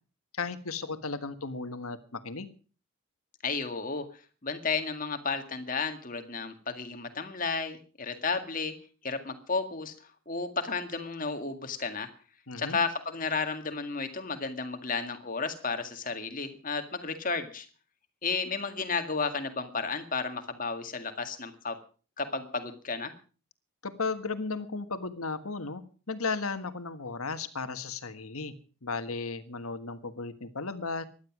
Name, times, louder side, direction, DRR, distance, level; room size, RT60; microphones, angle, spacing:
voice 1, 0.4-2.5 12.5-12.8 23.8-28.5 28.8-31.0, left 4 dB, 80° left, 10 dB, 1.6 m, -35 dB
voice 2, 3.4-8.7 9.0-12.1 12.6-17.7 18.2-21.8 22.2-23.1, left 4 dB, 40° left, 7 dB, 2.0 m, -33 dB
16.5 x 12.0 x 6.1 m, 0.39 s
head